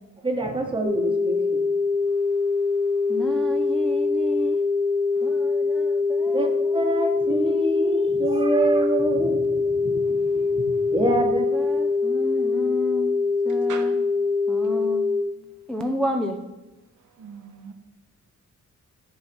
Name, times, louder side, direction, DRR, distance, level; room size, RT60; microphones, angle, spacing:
voice 1, 0.2-1.6 6.3-11.4, right 2 dB, 15° right, 2 dB, 1.2 m, -26 dB
sound 1, 0.8-15.2, left 4 dB, 85° left, 2.7 m, -23 dB
voice 2, 3.1-4.6 5.2-6.7 11.3-13.2 13.4-14.0 14.5-15.0 15.7-16.4, equal, ahead, 3 dB, 0.6 m, -31 dB
voice 3, 17.2-17.7, right 6 dB, 75° right, 6 dB, 1.1 m, -39 dB
10.0 x 4.1 x 6.0 m, 1.1 s
wide cardioid pair, 175°, 31 cm